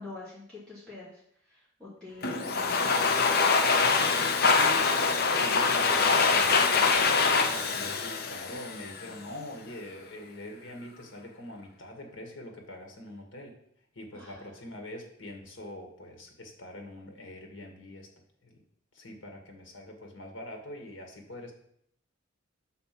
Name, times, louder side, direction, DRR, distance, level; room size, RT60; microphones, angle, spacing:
voice 1, 0.0-3.2 14.1-14.5, left 3 dB, 5° left, -10 dB, 2.3 m, -46 dB
Domestic sounds home sounds, 2.2-9.1, left 4 dB, 55° left, 0.7 m, -24 dB
voice 2, 2.8-3.2 3.5-4.9 5.3-7.0 7.5-13.5 13.9-18.1 18.4-18.6 18.9-21.5, left 1 dB, 80° left, 2 dB, 1.8 m, -43 dB
6.8 x 4.2 x 5.9 m, 0.70 s
head